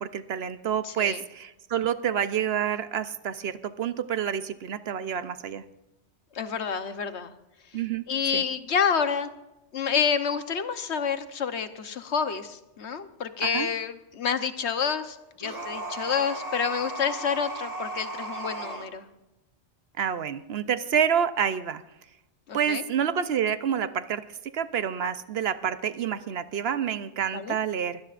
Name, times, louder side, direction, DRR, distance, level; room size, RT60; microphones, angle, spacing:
voice 1, 0.0-5.6 7.7-8.0 8.3-8.4 13.4-13.7 20.0-21.8 22.5-24.2 24.5-28.0, right 8 dB, 65° right, 12 dB, 0.9 m, -28 dB
voice 2, 0.8-1.2 6.3-7.3 8.1-9.3 9.7-19.1 22.5-22.8 27.3-27.6, left 6 dB, 75° left, 10 dB, 1.3 m, -28 dB
sound 1, 15.4-18.9, right 2 dB, 35° right, 1.6 m, -35 dB
23.0 x 17.0 x 2.5 m, 0.96 s
omnidirectional pair, 1.2 m